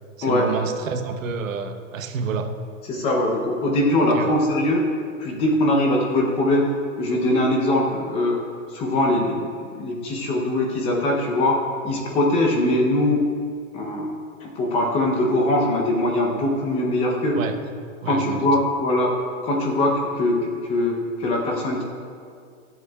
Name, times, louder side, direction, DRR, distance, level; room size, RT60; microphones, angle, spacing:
voice 1, 0.2-2.5 4.0-4.3 17.3-17.6 18.0-18.5, right 6 dB, 70° right, 6 dB, 1.1 m, -29 dB
voice 2, 2.9-4.8 5.2-6.6 7.0-8.4 8.7-13.2 13.7-14.1 14.4-17.4 18.0-19.1 19.4-21.8, left 1 dB, 15° left, 0 dB, 0.7 m, -22 dB
22.5 x 8.0 x 2.3 m, 2.2 s
hypercardioid pair, 165°, 41 cm